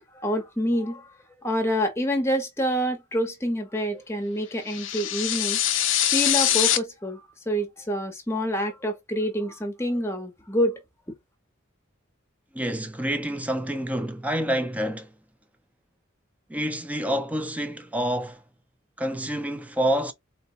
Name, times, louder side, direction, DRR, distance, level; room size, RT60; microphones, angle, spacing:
voice 1, 0.2-1.1 1.4-5.6 6.1-7.2 7.5-10.8, equal, 15° left, 0.8 m, -27 dB
sound 1, 4.7-6.8, left 12 dB, 65° left, 0.5 m, -23 dB
voice 2, 12.5-15.1 16.5-18.4 19.0-20.1, equal, 5° right, 0.4 m, -27 dB
4.0 x 2.2 x 2.6 m
head